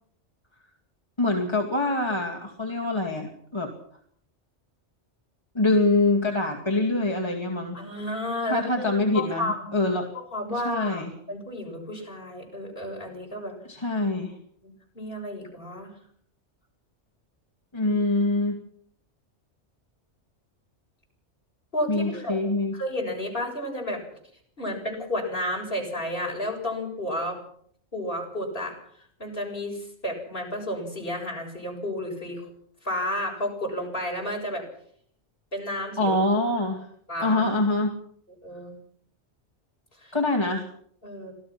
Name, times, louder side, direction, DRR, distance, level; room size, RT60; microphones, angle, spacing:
voice 1, 1.2-3.7 5.5-7.8 8.5-10.1 10.6-11.1 13.7-14.4 17.7-18.6 21.9-22.7 36.0-36.8 37.2-38.0 40.1-40.7, left 2 dB, 25° left, 0 dB, 2.4 m, -25 dB
voice 2, 7.7-9.8 10.1-13.6 14.6-15.9 17.8-18.0 21.7-22.4 22.7-24.0 24.6-27.4 27.9-28.8 29.2-32.5 32.8-34.7 35.5-36.2 37.1-37.4 38.4-38.8 40.0-40.2 41.0-41.3, left 1 dB, 50° left, 0 dB, 7.4 m, -32 dB
26.5 x 17.5 x 6.1 m, 0.64 s
omnidirectional pair, 1.2 m